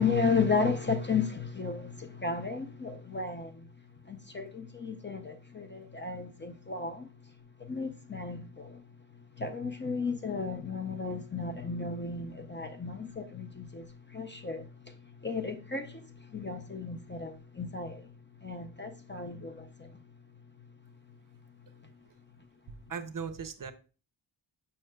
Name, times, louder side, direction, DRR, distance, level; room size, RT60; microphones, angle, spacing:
voice 1, 0.0-3.7 4.1-7.1 7.6-8.8 9.4-14.9 15.2-18.1 18.4-19.9, left 4 dB, 25° left, 0.4 m, -34 dB
voice 2, 22.7-23.7, right 6 dB, 45° right, 0.6 m, -38 dB
7.6 x 5.5 x 2.2 m
wide cardioid pair, 160°, 45 cm